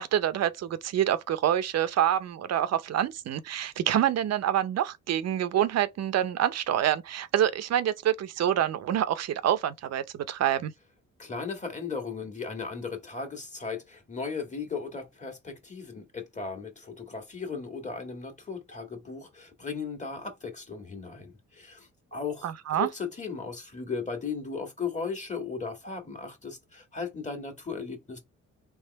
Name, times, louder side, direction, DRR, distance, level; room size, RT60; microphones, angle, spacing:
voice 1, 0.0-10.7 22.4-22.9, right 11 dB, 60° right, 0.6 m, -27 dB
voice 2, 11.2-28.2, left 5 dB, 25° left, 1.6 m, -36 dB
3.5 x 3.1 x 4.0 m
cardioid pair, 90°, 30 cm